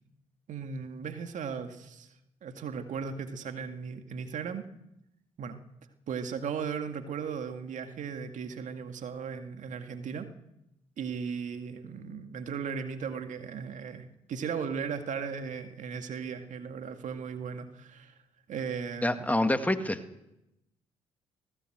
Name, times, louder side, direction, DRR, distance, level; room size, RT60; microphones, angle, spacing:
voice 1, 0.5-2.1 2.4-4.6 5.4-5.6 6.1-10.3 11.0-18.2 18.5-19.3, right 6 dB, 60° right, 7 dB, 2.1 m, -37 dB
voice 2, 19.0-20.0, left 1 dB, 10° left, 8 dB, 2.1 m, -26 dB
19.0 x 17.5 x 8.0 m, 0.87 s
hypercardioid pair, 55°, 15 cm